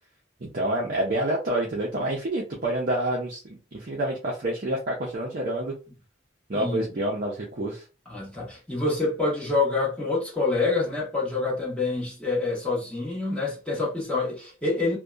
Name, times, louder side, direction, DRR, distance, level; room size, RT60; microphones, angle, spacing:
voice 1, 0.4-5.7 6.5-7.8, right 1 dB, 45° right, 0.5 m, -28 dB
voice 2, 8.1-15.0, left 3 dB, 5° left, 1.1 m, -27 dB
2.7 x 2.2 x 2.3 m
head